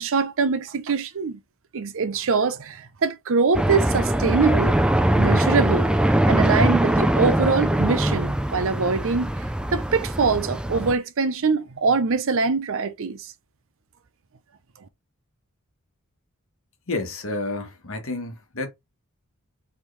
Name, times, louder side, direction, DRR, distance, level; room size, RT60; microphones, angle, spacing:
voice 1, 0.0-1.4 1.7-4.7 5.2-9.3 9.7-13.2, right 4 dB, 60° right, 0.6 m, -23 dB
sound 1, 3.5-10.9, right 1 dB, 5° right, 0.3 m, -22 dB
voice 2, 16.9-18.7, left 2 dB, 65° left, 1.3 m, -30 dB
4.6 x 3.6 x 3.2 m
head